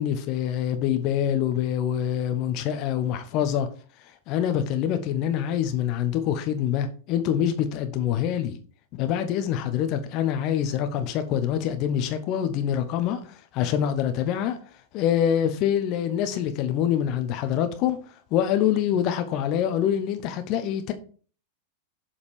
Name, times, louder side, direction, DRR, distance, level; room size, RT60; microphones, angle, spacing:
voice 1, 0.0-3.7 4.3-8.6 8.9-14.6 14.9-18.0 18.3-20.9, left 9 dB, 40° left, 0.9 m, -25 dB
7.1 x 4.3 x 4.9 m
figure-of-eight pair, 90°, 0 cm